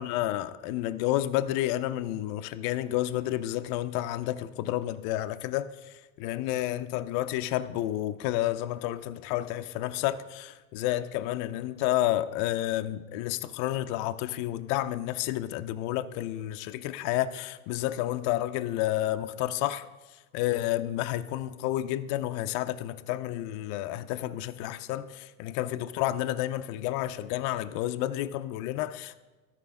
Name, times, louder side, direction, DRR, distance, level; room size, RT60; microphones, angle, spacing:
voice 1, 0.0-29.2, left 14 dB, 50° left, 0.5 m, -30 dB
13.0 x 4.5 x 3.5 m
hypercardioid pair, 80°, 43 cm